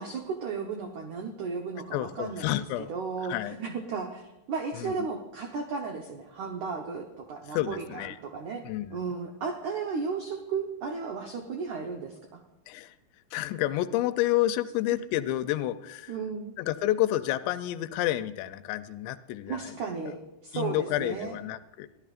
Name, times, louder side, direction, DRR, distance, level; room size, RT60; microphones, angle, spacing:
voice 1, 0.0-2.6 2.9-8.6 8.9-12.4 16.1-16.5 19.5-21.4, right 5 dB, 80° right, 3 dB, 1.7 m, -34 dB
voice 2, 1.9-2.9 3.2-3.5 4.8-4.9 7.5-8.2 8.6-9.0 12.7-13.0 13.3-16.1 16.6-19.7 20.0-20.2 20.5-21.9, left 14 dB, 85° left, 12 dB, 2.8 m, -29 dB
23.0 x 15.0 x 2.5 m, 0.96 s
omnidirectional pair, 5.0 m